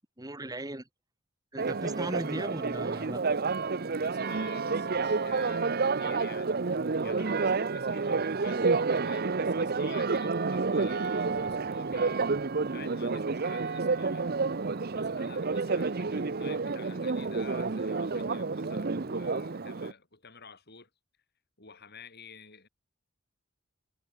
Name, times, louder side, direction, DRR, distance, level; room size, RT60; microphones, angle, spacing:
voice 1, 0.2-0.9 1.5-3.2, right 1 dB, 15° right, 2.0 m, -37 dB
Church bell, 1.6-19.9, right 4 dB, 45° right, 0.7 m, -29 dB
voice 2, 4.0-6.6 7.0-12.3 12.7-14.4 14.9-20.9 21.6-22.7, left 5 dB, 50° left, 6.9 m, -50 dB
head